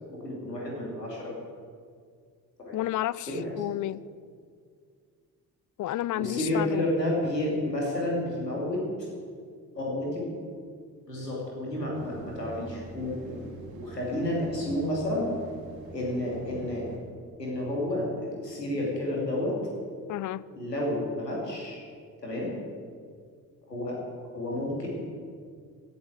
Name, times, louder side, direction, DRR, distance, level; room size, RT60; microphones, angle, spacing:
voice 1, 0.1-1.3 2.7-2.8 3.3-3.5 5.9-8.8 9.8-10.3 11.1-13.5 13.7-15.3 15.9-16.8 17.4-19.5 20.5-21.8 22.2-22.5 23.7-23.9 24.2-24.9, left 1 dB, 90° left, -3 dB, 2.9 m, -30 dB
voice 2, 2.7-4.0 5.8-6.9 20.1-20.4, left 14 dB, 40° left, 20 dB, 0.6 m, -31 dB
sound 1, 11.9-17.0, right 3 dB, 65° right, 2.6 m, -45 dB
16.0 x 8.7 x 7.9 m, 2.1 s
figure-of-eight pair, 40°, 47 cm